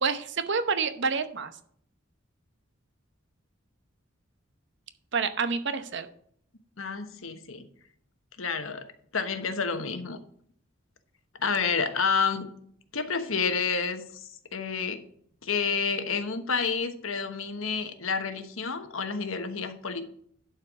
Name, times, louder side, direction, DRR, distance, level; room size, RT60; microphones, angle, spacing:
voice 1, 0.0-1.5 5.1-6.1, right 5 dB, 60° right, 9 dB, 0.9 m, -28 dB
voice 2, 6.8-7.7 8.4-8.9 9.1-10.2 11.4-12.5 12.9-15.0 15.4-20.0, left 5 dB, 80° left, 8 dB, 1.1 m, -29 dB
11.5 x 4.6 x 6.1 m, 0.63 s
head